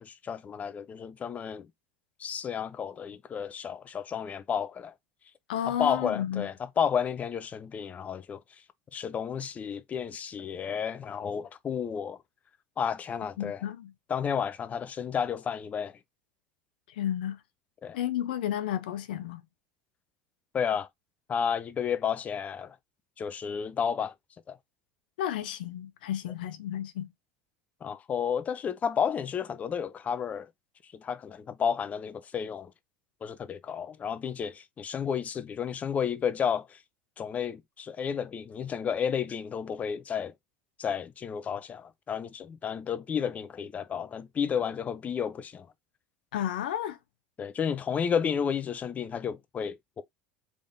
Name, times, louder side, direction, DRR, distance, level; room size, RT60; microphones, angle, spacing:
voice 1, 0.0-1.7 2.2-4.9 5.8-8.4 8.9-12.2 12.8-13.6 14.1-16.0 17.8-18.0 20.5-20.9 21.3-22.8 23.2-24.1 24.5-24.6 27.8-30.5 30.9-32.7 33.2-36.8 37.2-40.3 40.8-45.7 47.4-50.0, left 7 dB, 30° left, 0.5 m, -32 dB
voice 2, 5.5-6.5 13.4-13.9 16.9-17.4 17.9-19.4 25.2-27.1 46.3-47.0, left 11 dB, 80° left, 0.5 m, -32 dB
3.6 x 2.5 x 3.8 m
hypercardioid pair, 85°, 5 cm